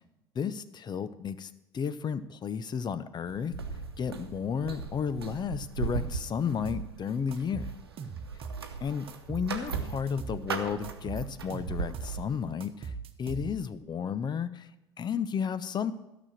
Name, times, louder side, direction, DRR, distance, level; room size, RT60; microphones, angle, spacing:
voice 1, 0.4-3.5 4.0-7.7 8.8-12.9 13.2-14.7 15.0-15.9, left 7 dB, 35° left, 14 dB, 0.7 m, -33 dB
sound 1, 3.3-12.5, right 5 dB, 90° right, 0.9 m, -39 dB
sound 2, 6.6-6.9 7.3-8.7 9.1-10.4 10.8-12.2 12.6-13.8, right 5 dB, 50° right, 1.1 m, -39 dB
12.5 x 6.2 x 7.3 m, 0.94 s
hypercardioid pair, 65°, 13 cm